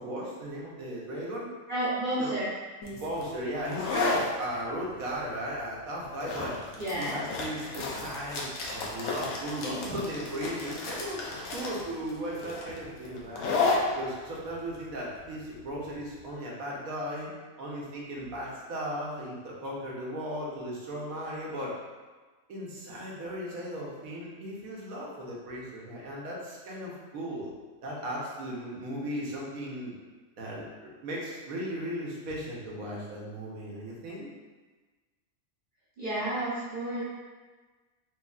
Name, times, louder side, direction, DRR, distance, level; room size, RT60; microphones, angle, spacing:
voice 1, 0.0-1.5 2.2-2.3 3.0-6.6 7.0-11.2 11.5-13.5 13.9-17.3 17.6-21.7 22.5-27.5 27.8-29.9 30.4-34.3, equal, 90° right, -4 dB, 1.3 m, -36 dB
voice 2, 1.7-2.5 6.8-7.2 36.0-37.0, right 1 dB, 45° right, -10 dB, 0.9 m, -31 dB
sound 1, 2.8-16.2, left 3 dB, 75° left, 1.1 m, -33 dB
4.4 x 3.0 x 2.4 m, 1.3 s
omnidirectional pair, 1.4 m